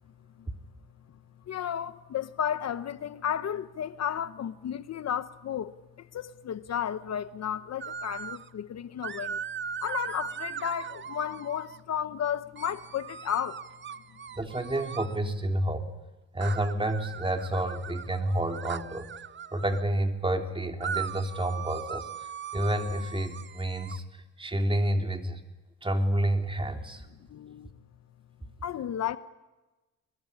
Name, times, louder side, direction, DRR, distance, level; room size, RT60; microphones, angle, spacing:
voice 1, 1.5-9.4 9.8-13.6 27.3-27.7 28.6-29.2, left 9 dB, 60° left, 1.1 m, -33 dB
sound 1, 7.8-8.5 9.0-11.8 12.6-15.2 16.4-19.8 20.8-24.0, right 7 dB, 40° right, 0.9 m, -39 dB
voice 2, 14.4-15.9 16.3-19.1 19.5-24.0 24.4-25.4 25.8-27.0, right 1 dB, 15° right, 3.5 m, -29 dB
24.5 x 22.0 x 10.0 m
cardioid pair, 90°, 30 cm